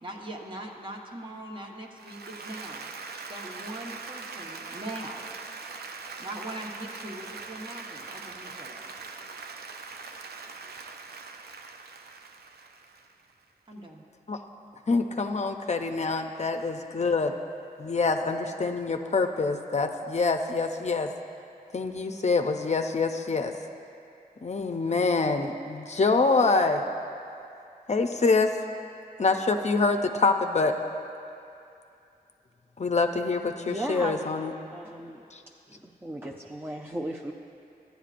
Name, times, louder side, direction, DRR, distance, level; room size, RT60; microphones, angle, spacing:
voice 1, 0.0-2.9 3.3-5.3 6.2-8.8 13.7-14.0, right 1 dB, 30° right, -1 dB, 1.1 m, -41 dB
Applause, 2.0-13.3, right 4 dB, 90° right, 0.5 m, -42 dB
voice 2, 14.9-17.3 17.8-21.1 21.7-23.5 24.4-26.8 27.9-28.5 29.2-30.8 32.8-34.5 35.3-35.4, left 3 dB, 45° left, 5 dB, 0.5 m, -25 dB
voice 3, 33.7-34.3 34.7-35.2 35.7-37.3, right 1 dB, 15° right, 0 dB, 0.5 m, -35 dB
14.0 x 10.5 x 2.5 m, 2.6 s
cardioid pair, 55°, 16 cm